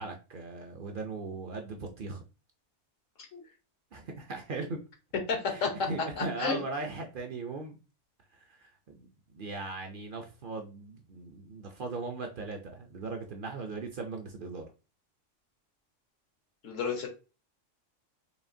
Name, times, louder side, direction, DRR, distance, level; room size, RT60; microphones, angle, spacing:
voice 1, 0.0-2.2 3.9-4.8 5.5-7.8 8.3-14.7, right 3 dB, 55° right, 3 dB, 0.6 m, -39 dB
voice 2, 5.3-5.7 6.2-6.6 16.6-17.1, left 5 dB, 85° left, 2 dB, 1.4 m, -31 dB
5.0 x 2.7 x 2.6 m, 0.31 s
omnidirectional pair, 1.3 m